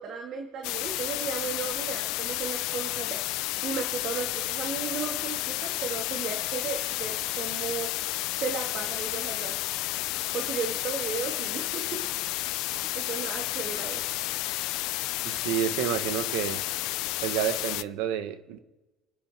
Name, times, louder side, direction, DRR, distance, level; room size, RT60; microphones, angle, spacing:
voice 1, 0.0-3.2 3.6-7.9 8.4-9.6 10.3-11.8 12.6-14.2, right 6 dB, 50° right, 1.9 m, -35 dB
sound 1, 0.6-17.8, left 19 dB, 75° left, 0.4 m, -31 dB
voice 2, 15.2-16.6 17.2-18.6, right 10 dB, 85° right, 1.4 m, -29 dB
29.5 x 10.5 x 3.6 m
cardioid pair, 125°, 0 cm